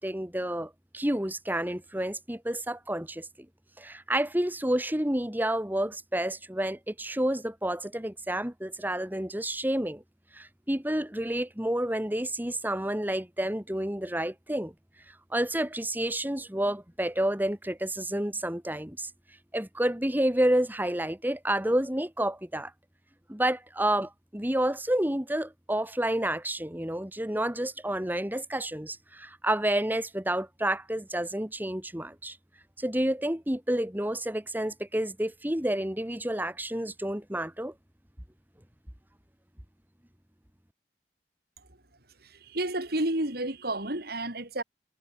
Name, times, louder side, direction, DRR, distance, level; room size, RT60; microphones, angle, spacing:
voice 1, 0.0-3.3 3.8-10.0 10.3-14.7 15.3-19.1 19.5-22.7 23.3-32.4 32.8-37.7, right 1 dB, 10° right, 2.0 m, -29 dB
voice 2, 42.2-44.6, right 1 dB, 60° right, 5.1 m, -31 dB
head